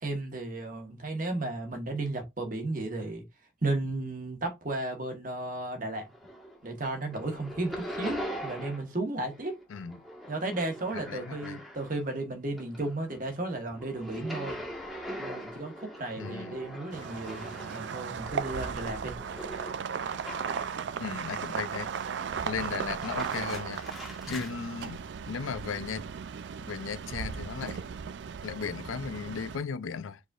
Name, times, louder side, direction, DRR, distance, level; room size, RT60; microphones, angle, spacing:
voice 1, 0.0-3.2 3.6-6.1 6.6-9.5 10.3-14.6 15.2-19.2 24.3-24.4, right 2 dB, 40° right, 1.2 m, -34 dB
sound 1, 5.9-6.7 6.9-9.0 9.2-12.1 12.5-20.8 21.3-22.0 22.8-24.5, equal, ahead, 1.3 m, -42 dB
voice 2, 10.9-11.6 16.2-16.6 21.0-21.9 22.4-23.9 24.3-26.1 26.6-27.8 28.4-30.2, left 6 dB, 90° left, 0.5 m, -36 dB
sound 2, 16.9-29.6, right 6 dB, 60° right, 0.3 m, -36 dB
4.8 x 4.1 x 2.4 m
head